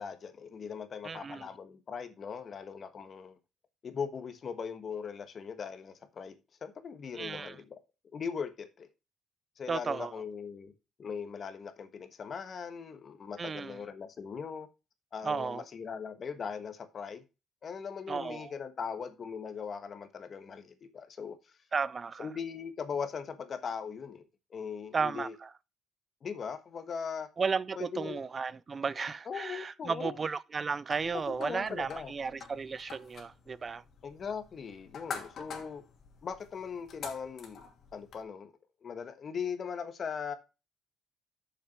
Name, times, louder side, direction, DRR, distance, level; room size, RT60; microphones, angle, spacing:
voice 1, 0.0-3.4 3.8-7.8 8.1-8.9 9.6-10.7 11.0-14.7 15.1-17.2 17.6-21.6 22.2-24.2 24.5-25.4 26.2-27.3 27.8-28.2 29.2-30.2 31.3-32.1 34.0-35.8 36.2-37.6 37.9-38.5 38.8-40.3, left 6 dB, 50° left, 1.3 m, -39 dB
voice 2, 1.0-1.4 7.2-7.5 9.7-10.1 13.4-13.7 15.2-15.6 18.1-18.5 21.7-22.3 24.9-25.3 27.4-33.8, right 5 dB, 40° right, 0.4 m, -34 dB
sound 1, 30.9-38.2, left 6 dB, 65° left, 2.4 m, -47 dB
6.7 x 6.1 x 5.9 m
cardioid pair, 90°, 0 cm